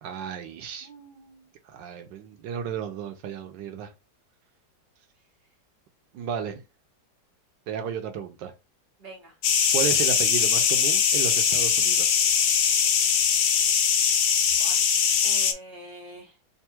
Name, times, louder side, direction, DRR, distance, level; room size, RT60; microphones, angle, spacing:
voice 1, 0.0-0.9 1.6-3.9 6.1-6.6 7.7-8.5 9.7-12.1, right 8 dB, 85° right, 1.5 m, -33 dB
voice 2, 0.8-1.5 9.0-9.3 14.6-14.8 15.2-16.3, right 1 dB, 40° right, 1.1 m, -45 dB
sound 1, 9.4-15.5, left 7 dB, 85° left, 1.4 m, -21 dB
3.6 x 2.3 x 4.4 m
omnidirectional pair, 1.9 m